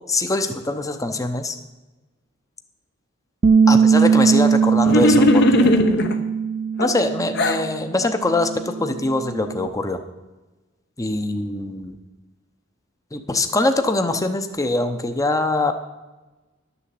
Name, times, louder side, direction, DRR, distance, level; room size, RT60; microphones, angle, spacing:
voice 1, 0.1-1.6 3.7-6.1 6.8-10.0 11.0-12.0 13.1-15.7, left 2 dB, 15° left, 7 dB, 0.8 m, -23 dB
Bass guitar, 3.4-7.8 8.1-9.7, right 6 dB, 35° right, 0.3 m, -20 dB
sound 1, 4.8-6.2 6.8-7.6, left 2 dB, 55° left, 1.0 m, -18 dB
12.0 x 6.9 x 7.7 m, 1.1 s
head